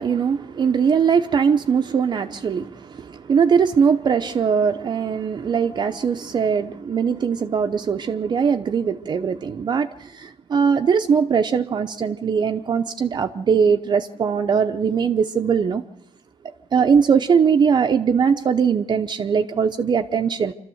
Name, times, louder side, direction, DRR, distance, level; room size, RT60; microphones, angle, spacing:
voice 1, 0.0-15.8 16.7-20.5, right 6 dB, 35° right, 6 dB, 0.7 m, -20 dB
26.0 x 13.0 x 7.9 m, 0.84 s
cardioid pair, 130°, 12 cm